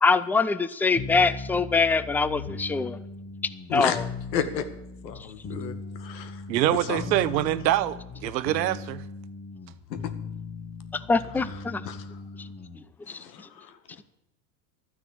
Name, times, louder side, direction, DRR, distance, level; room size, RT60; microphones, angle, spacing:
voice 1, 0.0-3.0 3.7-4.1 5.2-5.3 10.9-11.8 12.4-12.5 12.8-13.2, left 4 dB, 5° left, 0.4 m, -24 dB
sound 1, 1.0-12.8, left 4 dB, 30° left, 2.1 m, -39 dB
voice 2, 4.3-4.6 5.0-5.7 6.0-6.4 6.7-7.2 11.9-12.0 13.2-13.7, left 8 dB, 85° left, 1.9 m, -31 dB
voice 3, 6.5-9.0, right 13 dB, 90° right, 1.1 m, -25 dB
12.5 x 9.8 x 8.5 m
supercardioid pair, 110°, 49 cm